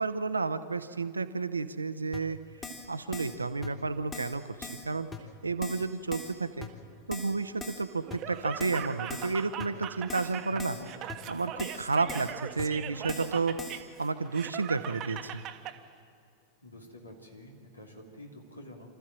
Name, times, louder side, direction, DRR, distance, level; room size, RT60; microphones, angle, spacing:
voice 1, 0.0-2.4 2.9-5.1 5.4-6.7 7.1-10.8 11.3-13.6 14.0-15.4, right 4 dB, 80° right, 11 dB, 0.9 m, -31 dB
Keyboard (musical), 2.1-2.2 2.6-2.9 3.1-3.4 3.6-3.7 4.1-4.3 4.6-4.8 5.1-5.2 5.6-5.8 6.1-6.3 6.6-6.7 7.1-7.3 7.6-7.8 8.1-8.2 8.6-8.8 9.1-9.3 9.6-9.7 10.1-10.3 10.6-10.8 11.1-11.2 11.6-11.8 12.1-12.3 12.6-12.7 13.1-13.3 13.6-13.8, left 3 dB, 20° left, 2.7 m, -41 dB
Laughter, 8.1-15.8, right 10 dB, 35° right, 1.2 m, -40 dB
voice 2, 10.5-10.9 16.6-18.9, left 1 dB, 80° left, 1 dB, 3.1 m, -48 dB
27.0 x 14.0 x 7.5 m, 2.3 s
figure-of-eight pair, 90°, 0 cm